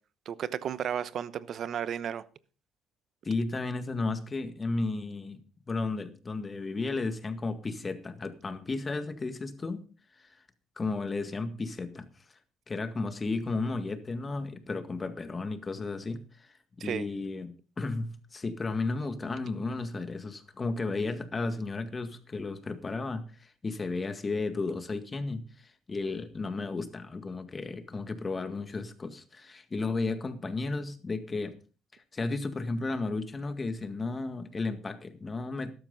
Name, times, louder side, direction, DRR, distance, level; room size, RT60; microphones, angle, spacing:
voice 1, 0.3-2.2 16.8-17.0, right 9 dB, 60° right, 17 dB, 0.9 m, -33 dB
voice 2, 3.2-5.4 5.7-9.8 10.2-10.3 10.8-12.1 12.7-31.6 32.1-35.7, left 3 dB, 30° left, 10 dB, 1.8 m, -33 dB
13.0 x 12.0 x 4.0 m, 0.35 s
supercardioid pair, 80°, 0 cm